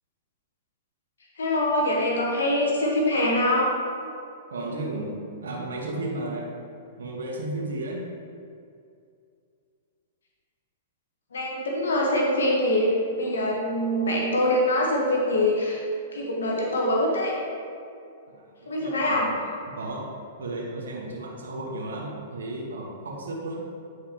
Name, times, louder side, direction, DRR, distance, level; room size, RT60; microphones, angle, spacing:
voice 1, 1.4-3.7 11.3-15.8 16.1-17.3 18.7-19.3, left 1 dB, 85° left, -2 dB, 1.3 m, -24 dB
voice 2, 4.5-6.5 7.0-8.0 18.3-19.4 19.7-20.1 20.4-23.6, right 2 dB, 80° right, -3 dB, 1.4 m, -34 dB
9.7 x 4.8 x 3.0 m, 2.4 s
hypercardioid pair, 120°, 0 cm